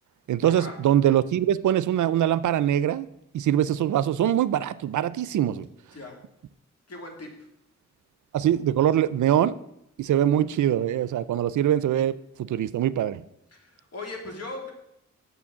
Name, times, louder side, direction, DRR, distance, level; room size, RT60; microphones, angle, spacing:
voice 1, 0.3-5.7 8.3-9.5 10.0-13.3, right 11 dB, 85° right, 0.5 m, -23 dB
voice 2, 6.9-7.3 13.5-14.7, left 2 dB, 55° left, 2.6 m, -38 dB
6.9 x 6.1 x 7.2 m
cardioid pair, 75°, 29 cm